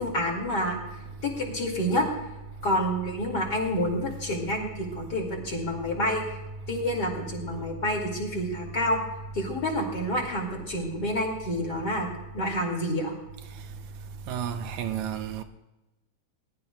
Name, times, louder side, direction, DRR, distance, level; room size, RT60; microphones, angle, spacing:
voice 1, 0.0-2.0 2.6-6.4 6.7-9.0 9.3-12.1 12.3-13.1, equal, 35° left, 2.5 m, -28 dB
voice 2, 14.3-15.4, right 9 dB, 80° right, 2.1 m, -31 dB
20.5 x 19.5 x 2.3 m
omnidirectional pair, 3.4 m